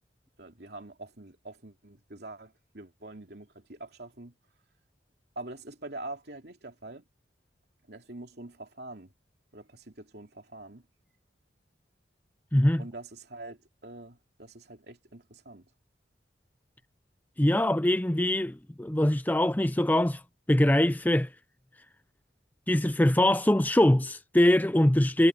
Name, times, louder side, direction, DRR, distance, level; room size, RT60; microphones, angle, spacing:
voice 1, 0.4-4.3 5.3-7.0 7.9-9.1 9.5-10.9 12.8-15.7, right 2 dB, 60° right, 3.1 m, -44 dB
voice 2, 12.5-12.8 17.4-20.2 20.5-21.3 22.7-25.3, left 1 dB, 10° left, 0.5 m, -23 dB
head